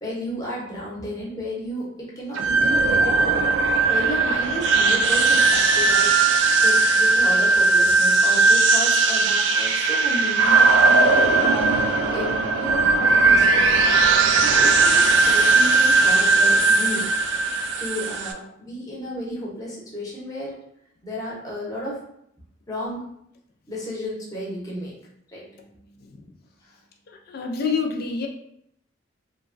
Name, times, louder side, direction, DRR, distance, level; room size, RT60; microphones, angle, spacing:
voice 1, 0.0-6.2 6.6-11.7 12.1-13.6 14.4-17.1 17.8-20.5 21.0-22.0 22.7-23.0 23.7-24.9 25.3-26.0, equal, 20° left, -5 dB, 0.8 m, -33 dB
sound 1, 2.3-18.3, right 3 dB, 70° right, 0.3 m, -18 dB
voice 2, 26.0-26.3 27.1-28.3, left 5 dB, 55° left, 2 dB, 0.4 m, -28 dB
2.9 x 2.2 x 2.5 m, 0.73 s
head